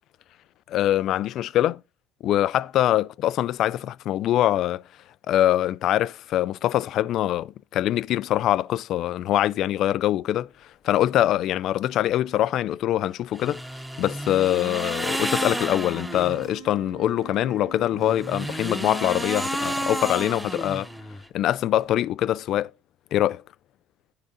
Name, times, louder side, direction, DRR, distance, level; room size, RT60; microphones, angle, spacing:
voice 1, 0.7-1.8 2.2-4.8 5.3-13.6 14.0-20.9 21.3-22.7 23.1-23.4, left 12 dB, 55° left, 0.3 m, -23 dB
sound 1, 13.3-16.5 17.9-21.3, right 1 dB, 5° right, 0.5 m, -31 dB
sound 2, 15.8-21.3, right 14 dB, 75° right, 1.7 m, -46 dB
9.4 x 3.8 x 6.8 m
cardioid pair, 115°, 0 cm